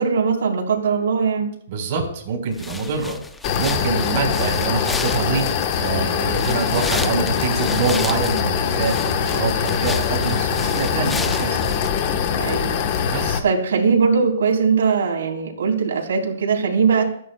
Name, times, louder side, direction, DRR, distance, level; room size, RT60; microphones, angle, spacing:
voice 1, 0.0-1.5 12.4-12.9 13.4-17.0, right 5 dB, 75° right, -1 dB, 3.8 m, -20 dB
voice 2, 1.7-3.2 3.6-5.4 5.8-11.7 13.1-13.4, right 5 dB, 40° right, 1 dB, 4.5 m, -25 dB
sound 1, 2.5-11.9, left 3 dB, 5° left, 0.5 m, -34 dB
sound 2, 3.4-13.4, left 7 dB, 35° left, 1.3 m, -22 dB
28.5 x 10.0 x 2.4 m, 0.66 s
hypercardioid pair, 165°, 0 cm